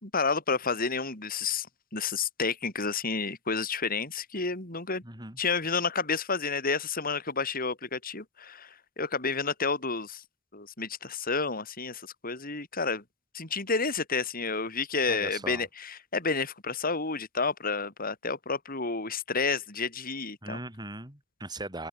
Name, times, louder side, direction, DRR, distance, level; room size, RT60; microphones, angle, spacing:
voice 1, 0.0-1.7 1.9-5.0 5.4-10.2 10.5-13.0 13.3-20.6, left 4 dB, 45° left, 4.8 m, -30 dB
voice 2, 5.0-5.4 15.1-15.7 20.4-21.9, right 2 dB, 20° right, 5.3 m, -39 dB
open air
head